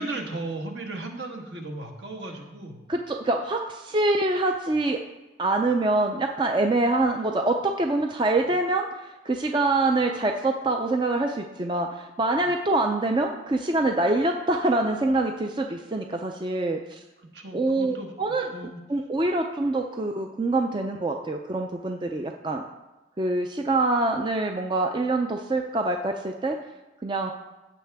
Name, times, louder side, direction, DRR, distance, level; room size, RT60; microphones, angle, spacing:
voice 1, 0.0-2.8 17.3-18.1 18.5-18.8, right 2 dB, 65° right, 2 dB, 1.3 m, -35 dB
voice 2, 2.9-5.0 5.4-8.9 9.3-17.0 17.5-18.5 18.9-22.6 23.2-26.6 27.0-27.3, right 2 dB, 25° right, 3 dB, 0.4 m, -25 dB
15.5 x 5.8 x 3.4 m, 1.1 s
head